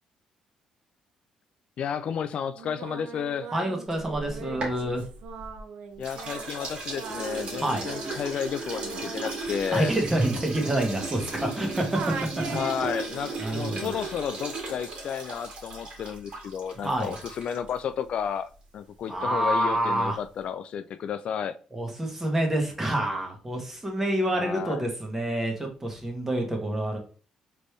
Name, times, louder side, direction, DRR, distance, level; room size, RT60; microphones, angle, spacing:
voice 1, 1.8-3.5 6.0-9.9 12.5-21.6 24.4-24.8, left 8 dB, 60° left, 0.3 m, -32 dB
Singing, 2.6-11.6 11.9-13.3, right 5 dB, 75° right, 0.7 m, -41 dB
voice 2, 3.5-5.0 7.6-7.8 9.7-11.8 13.4-13.9 16.7-17.1 19.1-20.2 21.7-27.0, right 1 dB, 15° right, 1.5 m, -27 dB
sound 1, 4.0-5.6 6.0-17.8, right 3 dB, 55° right, 2.1 m, -36 dB
4.1 x 3.4 x 3.2 m
cardioid pair, 90°, 2 cm